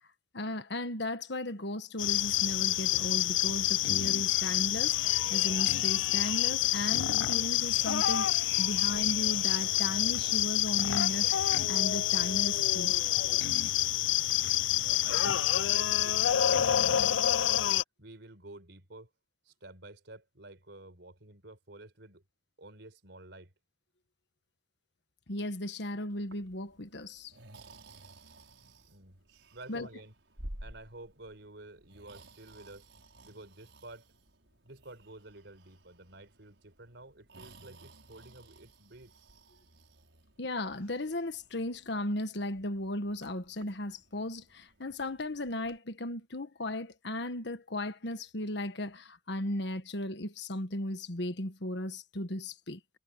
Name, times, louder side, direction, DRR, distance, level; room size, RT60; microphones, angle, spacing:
voice 1, 0.3-11.3 11.7-12.9 25.3-27.3 29.7-29.9 40.4-52.8, left 1 dB, 65° left, 1.5 m, -36 dB
sound 1, 2.0-17.8, left 13 dB, 85° left, 0.4 m, -27 dB
voice 2, 14.8-17.6 18.0-19.1 19.4-22.2 22.6-23.5 28.9-29.2 29.5-30.1 30.6-32.9 33.2-34.1 34.6-39.1, right 2 dB, 70° right, 5.2 m, -51 dB
Breathing, 26.1-45.8, right 1 dB, 85° right, 5.7 m, -54 dB
head